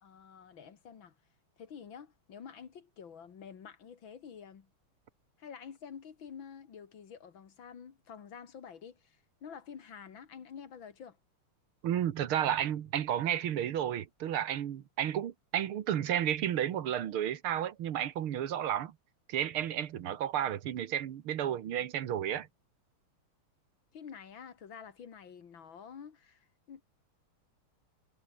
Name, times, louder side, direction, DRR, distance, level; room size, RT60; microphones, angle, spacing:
voice 1, 0.0-1.1 1.6-4.7 5.4-11.2 23.9-26.8, left 7 dB, 65° left, 2.5 m, -49 dB
voice 2, 11.8-18.9 19.3-22.5, right 10 dB, 75° right, 2.1 m, -32 dB
omnidirectional pair, 2.4 m